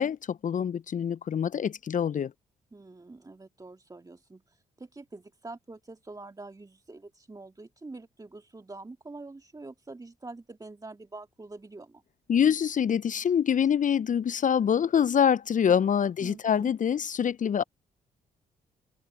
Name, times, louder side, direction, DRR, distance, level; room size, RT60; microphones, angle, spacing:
voice 1, 0.0-2.3 12.3-17.6, left 8 dB, 45° left, 1.0 m, -25 dB
voice 2, 2.7-12.0 16.2-16.7, right 3 dB, 20° right, 2.2 m, -45 dB
open air
figure-of-eight pair, 40°, 19 cm